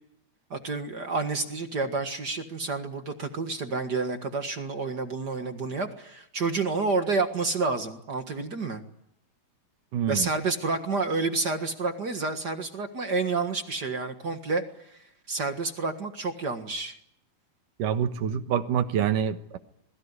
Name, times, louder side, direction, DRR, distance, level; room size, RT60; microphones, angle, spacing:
voice 1, 0.5-8.8 10.1-14.6 14.9-16.9, right 3 dB, 40° right, 6 dB, 1.6 m, -29 dB
voice 2, 9.9-10.3 17.8-19.6, right 8 dB, 70° right, 9 dB, 2.9 m, -26 dB
27.0 x 22.0 x 9.8 m, 0.76 s
omnidirectional pair, 4.1 m